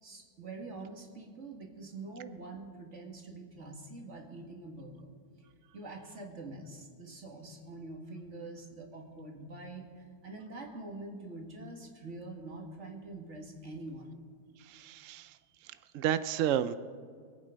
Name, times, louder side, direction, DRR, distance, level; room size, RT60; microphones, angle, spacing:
voice 1, 0.0-5.2 5.7-14.2, right 2 dB, 40° right, 1 dB, 2.2 m, -45 dB
voice 2, 14.6-15.4 15.6-16.8, right 10 dB, 80° right, 13 dB, 0.7 m, -32 dB
24.0 x 8.9 x 5.1 m, 2.1 s
omnidirectional pair, 1.9 m